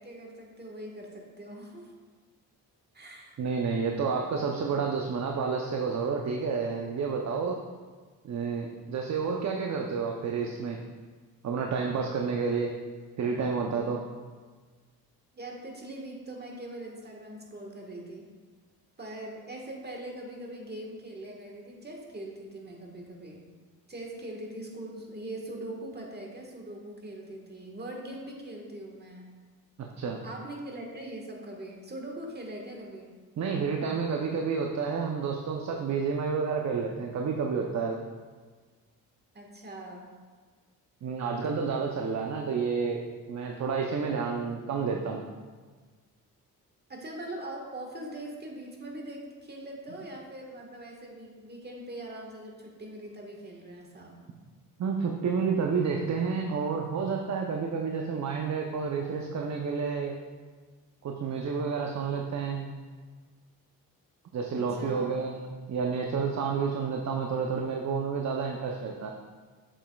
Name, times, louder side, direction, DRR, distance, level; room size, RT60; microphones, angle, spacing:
voice 1, 0.0-1.9 2.9-3.4 15.3-18.3 19.0-23.4 23.9-29.3 30.2-33.1 39.3-40.1 46.9-54.2 64.5-65.1, right 1 dB, 25° right, 0 dB, 1.5 m, -41 dB
voice 2, 3.4-7.6 8.2-10.8 11.4-12.7 13.2-14.0 30.0-30.2 33.4-38.0 41.0-43.0 43.3-45.2 54.8-60.1 61.0-62.8 64.3-69.1, right 5 dB, 50° right, 1 dB, 0.7 m, -30 dB
7.3 x 7.2 x 2.3 m, 1.5 s
cardioid pair, 80°, 36 cm